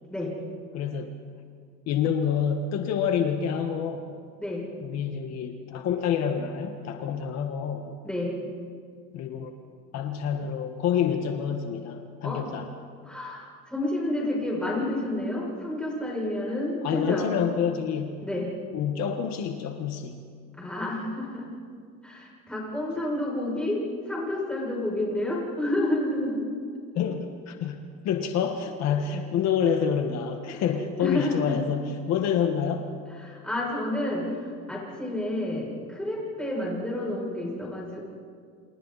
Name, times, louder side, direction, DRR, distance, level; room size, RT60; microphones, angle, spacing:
voice 1, 0.7-1.1 1.9-4.1 4.8-7.9 9.1-9.5 9.9-12.7 16.8-18.2 18.7-20.2 26.9-32.9, left 7 dB, 60° left, 5 dB, 1.5 m, -27 dB
voice 2, 8.0-8.4 12.2-12.4 13.0-17.3 18.2-18.5 20.6-21.5 22.0-26.4 28.9-29.0 30.5-31.5 33.2-38.1, left 1 dB, 5° left, -4 dB, 6.7 m, -30 dB
30.0 x 27.5 x 4.2 m, 2.1 s
cardioid pair, 150°, 30 cm